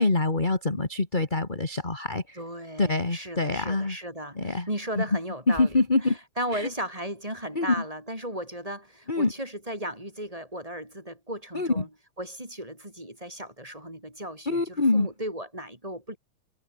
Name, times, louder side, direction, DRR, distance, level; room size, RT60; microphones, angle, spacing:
voice 1, 0.0-2.4 2.8-4.0 4.4-4.7 5.0-5.1 5.5-6.2 6.5-6.7 7.5-7.7 9.1-9.3 11.5-11.8 14.5-15.1, left 3 dB, 15° left, 2.0 m, -25 dB
voice 2, 2.4-11.9 12.2-16.2, right 1 dB, 10° right, 5.2 m, -36 dB
omnidirectional pair, 4.2 m